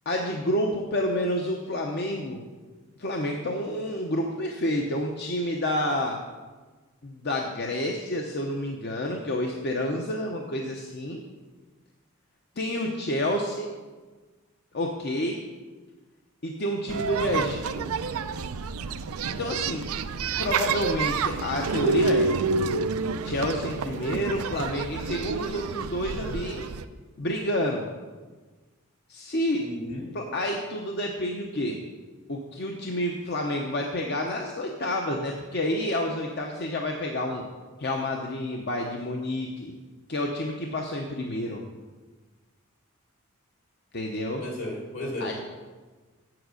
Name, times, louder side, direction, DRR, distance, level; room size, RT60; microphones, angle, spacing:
voice 1, 0.1-2.4 3.0-6.2 7.0-11.2 12.6-13.7 14.7-15.4 16.4-17.9 19.3-19.8 20.3-22.3 23.2-26.6 27.2-27.9 29.1-29.6 30.1-31.8 32.3-37.4 37.8-39.8 40.1-41.6 43.9-44.4 45.2-45.3, left 1 dB, 50° left, 1 dB, 0.8 m, -29 dB
sound 1, 16.9-26.8, right 4 dB, 85° right, 0.5 m, -28 dB
voice 2, 29.6-30.1 44.4-45.3, left 1 dB, 70° left, -2 dB, 3.3 m, -34 dB
8.1 x 7.7 x 6.4 m, 1.3 s
head